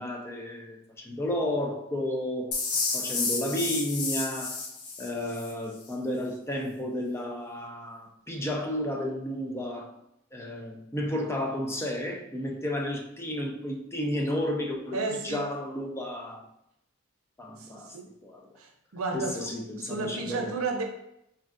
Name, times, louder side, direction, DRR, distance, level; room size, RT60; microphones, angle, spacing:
voice 1, 0.0-2.5 2.9-4.6 5.0-9.9 10.3-15.0 15.2-16.4 17.4-18.0 18.2-18.5 19.1-20.6, left 1 dB, 10° left, 1 dB, 0.4 m, -32 dB
sound 1, 2.5-5.5, left 4 dB, 85° left, 0.6 m, -31 dB
voice 2, 14.9-15.5 17.6-18.0 18.6-20.8, right 3 dB, 85° right, 3 dB, 0.6 m, -33 dB
4.2 x 2.4 x 2.4 m, 0.80 s
head